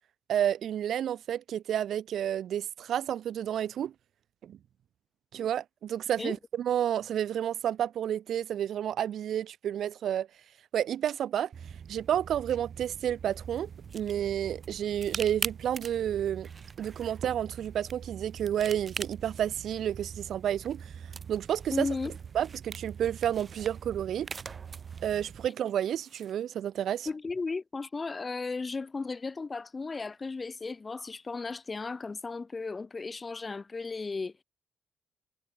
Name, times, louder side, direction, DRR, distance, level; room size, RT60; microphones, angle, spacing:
voice 1, 0.3-3.9 4.4-4.6 5.3-10.3 10.7-11.5 11.9-16.5 16.8-20.9 21.3-21.9 22.3-24.3 25.0-27.1, right 10 dB, 65° right, 0.7 m, -30 dB
sound 1, 11.5-25.5, right 7 dB, 50° right, 1.2 m, -45 dB
sound 2, 13.3-26.3, right 5 dB, 35° right, 3.0 m, -44 dB
voice 2, 21.7-22.2 27.1-34.4, left 4 dB, 30° left, 1.8 m, -35 dB
cardioid pair, 90°, 0 cm